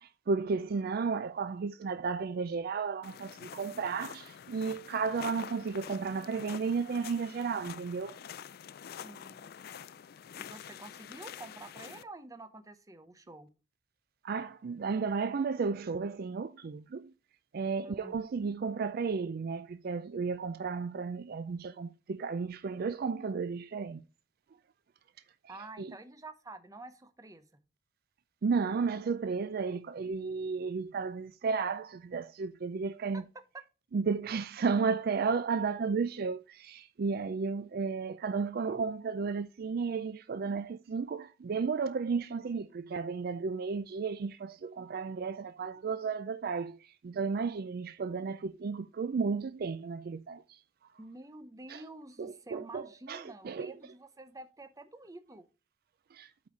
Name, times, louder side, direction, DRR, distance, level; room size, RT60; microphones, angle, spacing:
voice 1, 0.0-8.2 14.2-17.1 17.5-24.0 25.8-25.9 28.4-33.2 33.9-50.6 51.7-51.8 52.2-53.7 56.1-56.3, right 5 dB, 50° right, 0.4 m, -33 dB
sound 1, 3.0-12.0, left 8 dB, 50° left, 0.3 m, -47 dB
voice 2, 9.0-9.5 10.3-13.5 17.8-18.1 25.5-27.6 33.1-33.2 33.5-33.6 51.0-55.4, right 2 dB, 20° right, 0.7 m, -49 dB
8.5 x 4.1 x 4.6 m
head